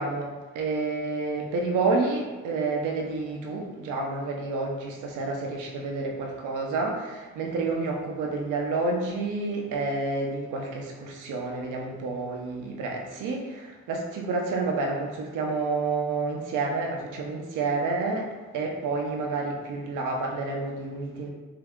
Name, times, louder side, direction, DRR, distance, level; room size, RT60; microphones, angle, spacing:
voice 1, 0.0-21.3, right 3 dB, 90° right, 0 dB, 0.8 m, -29 dB
4.6 x 2.0 x 3.6 m, 1.2 s
cardioid pair, 90°, 30 cm